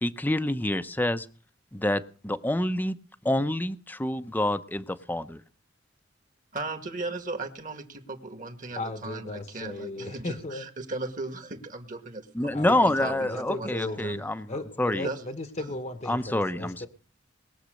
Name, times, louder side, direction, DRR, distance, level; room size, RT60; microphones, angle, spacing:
voice 1, 0.0-1.3 1.7-3.0 3.2-5.4 12.4-15.1 16.1-16.9, left 1 dB, 10° left, 0.7 m, -27 dB
voice 2, 6.5-14.2 14.9-15.2 15.6-15.7, right 2 dB, 45° right, 2.0 m, -37 dB
voice 3, 8.7-10.7 12.5-16.9, left 2 dB, 40° left, 1.0 m, -36 dB
20.5 x 7.3 x 6.5 m
head